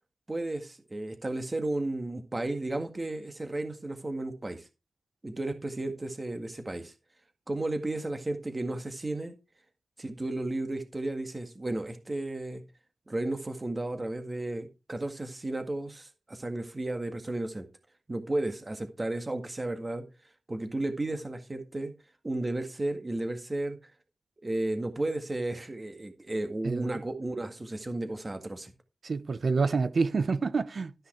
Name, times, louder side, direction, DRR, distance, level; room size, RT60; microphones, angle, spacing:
voice 1, 0.3-4.7 5.2-6.9 7.5-9.3 10.0-12.6 13.1-17.7 18.1-20.0 20.5-21.9 22.2-23.8 24.4-28.7, right 2 dB, 30° right, 1.8 m, -33 dB
voice 2, 26.6-27.0 29.0-30.9, right 4 dB, 60° right, 0.7 m, -28 dB
13.0 x 5.7 x 4.4 m
wide cardioid pair, 90°, 0 cm